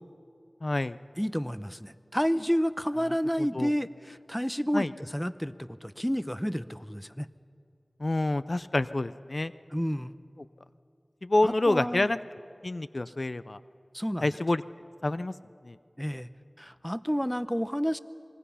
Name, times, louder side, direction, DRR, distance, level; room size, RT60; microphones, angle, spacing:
voice 1, 0.6-1.0 3.4-3.7 4.7-4.9 8.0-9.5 11.2-12.2 12.6-13.6 14.2-14.6 15.0-15.3 15.7-15.8, left 2 dB, 55° left, 14 dB, 0.4 m, -27 dB
voice 2, 1.2-7.3 9.7-10.1 11.4-12.1 13.9-14.3 15.0-15.1 16.0-16.3 16.6-18.0, equal, 5° left, 14 dB, 0.7 m, -30 dB
26.0 x 21.5 x 5.7 m, 2.5 s
wide cardioid pair, 45°, 0 cm